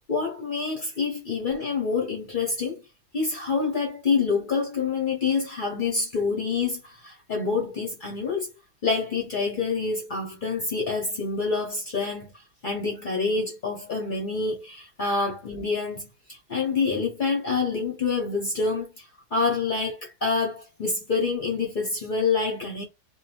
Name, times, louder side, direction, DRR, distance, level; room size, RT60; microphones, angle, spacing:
voice 1, 0.1-2.8 3.1-8.5 8.8-22.8, left 4 dB, 55° left, 0.5 m, -27 dB
2.6 x 2.2 x 2.7 m
omnidirectional pair, 1.8 m